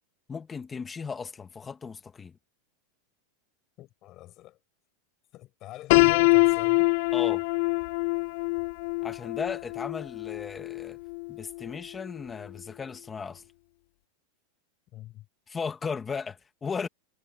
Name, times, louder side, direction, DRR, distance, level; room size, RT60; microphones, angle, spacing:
voice 1, 0.3-2.4 7.1-7.4 9.0-11.0 11.3-13.4 15.5-16.9, left 5 dB, 10° left, 1.3 m, -36 dB
voice 2, 3.8-4.6 5.3-7.0 14.9-15.3, left 15 dB, 30° left, 7.0 m, -45 dB
Piano, 5.9-11.8, left 29 dB, 50° left, 0.4 m, -25 dB
supercardioid pair, 175°, 0 cm